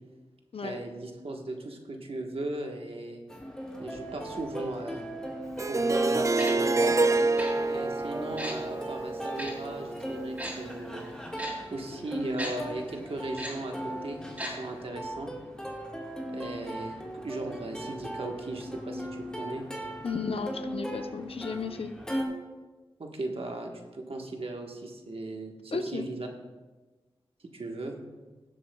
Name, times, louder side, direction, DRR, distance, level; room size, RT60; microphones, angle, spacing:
voice 1, 0.6-3.2 3.8-5.0 5.7-6.9 7.7-11.1 11.7-15.3 16.3-19.6 23.0-26.3 27.5-28.0, right 2 dB, 65° right, 2 dB, 1.3 m, -37 dB
Plucked string instrument, 3.3-22.2, equal, 5° left, 1.6 m, -38 dB
Harp, 5.6-10.5, right 3 dB, 30° right, 0.4 m, -28 dB
Tick-tock, 6.4-6.5 7.4-7.5 8.4-8.5 9.4-9.5 10.4-10.5 11.4-11.5 12.4-12.5 13.4-13.5 14.4-14.5 14.8-14.9, equal, 15° right, 3.4 m, -35 dB
voice 2, 20.0-21.9 25.7-26.1, left 4 dB, 65° left, 9 dB, 0.6 m, -34 dB
17.0 x 7.6 x 2.3 m, 1.3 s
wide cardioid pair, 65°, 11 cm